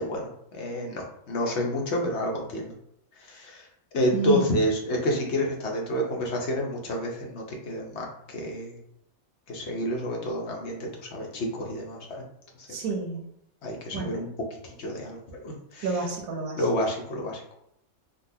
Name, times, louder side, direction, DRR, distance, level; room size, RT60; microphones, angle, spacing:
voice 1, 0.0-2.7 3.2-3.7 3.9-8.8 9.5-12.2 13.6-14.3 14.8-15.9 16.6-17.5, left 1 dB, 60° left, -1 dB, 0.9 m, -29 dB
voice 2, 4.1-4.5 12.7-13.2 13.9-14.2 15.8-16.7, right 4 dB, 80° right, 1 dB, 1.3 m, -29 dB
3.9 x 2.3 x 2.7 m, 0.74 s
omnidirectional pair, 1.5 m